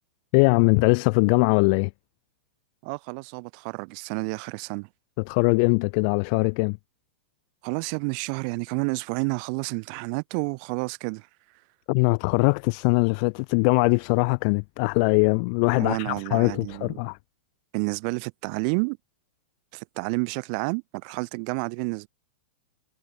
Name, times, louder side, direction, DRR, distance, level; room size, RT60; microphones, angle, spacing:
voice 1, 0.3-1.9 5.3-6.8 11.9-17.2, left 34 dB, 50° left, 0.7 m, -21 dB
voice 2, 2.8-4.9 7.6-11.3 15.8-17.0 17.7-19.0 19.7-22.1, right 38 dB, 50° right, 4.8 m, -30 dB
hypercardioid pair, 130°, 6 cm